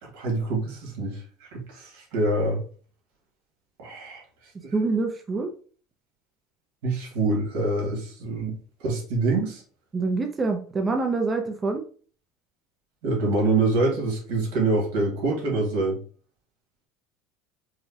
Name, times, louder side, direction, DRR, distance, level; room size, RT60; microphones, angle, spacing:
voice 1, 0.0-2.6 3.8-4.2 4.6-4.7 6.8-9.6 13.0-16.0, right 2 dB, 85° right, 0 dB, 1.6 m, -26 dB
voice 2, 4.7-5.5 9.9-11.8, right 3 dB, 20° right, 4 dB, 0.5 m, -26 dB
4.8 x 2.2 x 2.8 m, 0.41 s
supercardioid pair, 140°, 0 cm